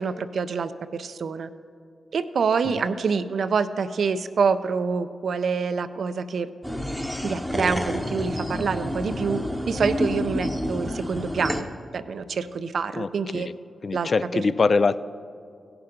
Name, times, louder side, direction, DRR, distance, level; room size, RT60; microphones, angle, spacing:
voice 1, 0.0-1.5 2.1-6.5 7.2-9.4 9.7-11.7 11.9-13.5 13.9-14.5, right 5 dB, 75° right, 12 dB, 0.4 m, -26 dB
sound 1, 6.6-11.6, left 1 dB, 5° left, 0.9 m, -29 dB
voice 2, 13.8-15.0, left 4 dB, 55° left, 16 dB, 0.3 m, -23 dB
16.5 x 5.9 x 5.0 m, 2.4 s
cardioid pair, 55°, 0 cm